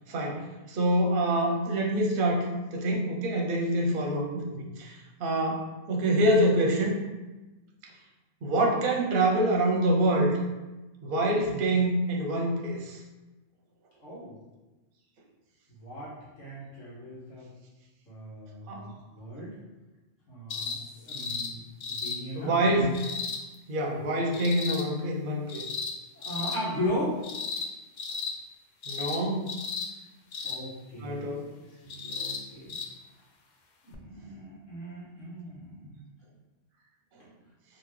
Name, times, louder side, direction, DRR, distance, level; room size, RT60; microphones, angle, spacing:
voice 1, 0.1-7.0 8.4-10.4 11.0-13.0 18.7-18.9 22.3-23.0 23.7-25.6 28.9-29.5 31.0-31.5, right 1 dB, 55° right, 0 dB, 0.7 m, -26 dB
voice 2, 14.0-14.4 15.7-17.5 18.1-19.6 20.3-22.9 24.0-24.1 26.1-27.3 30.4-31.4 31.8-32.8 33.8-36.0, equal, 85° left, -8 dB, 1.5 m, -37 dB
sound 1, 20.5-20.8 21.1-21.5 21.8-22.2 22.9-23.4 24.3-24.8 25.5-25.9 26.2-26.6 27.2-27.7 28.0-28.3 28.8-29.2 29.5-29.9 30.3-30.6 31.9-32.4 32.7-32.9 33.9-34.0, left 5 dB, 70° left, 0.4 m, -34 dB
3.7 x 2.6 x 3.1 m, 1.1 s
omnidirectional pair, 1.3 m